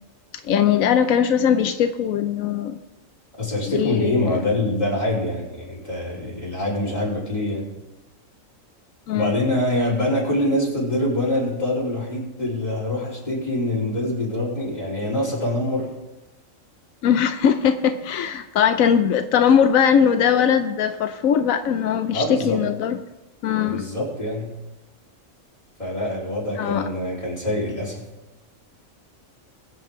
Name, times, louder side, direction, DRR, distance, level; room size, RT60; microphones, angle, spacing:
voice 1, 0.4-2.8 3.7-4.4 9.1-9.3 17.0-23.0 23.4-23.8 26.6-26.8, left 8 dB, 90° left, 1.1 m, -20 dB
voice 2, 3.4-7.7 9.1-15.9 22.1-22.6 23.6-24.5 25.8-28.0, left 1 dB, 30° left, 4.1 m, -25 dB
21.5 x 7.4 x 3.7 m
omnidirectional pair, 1.4 m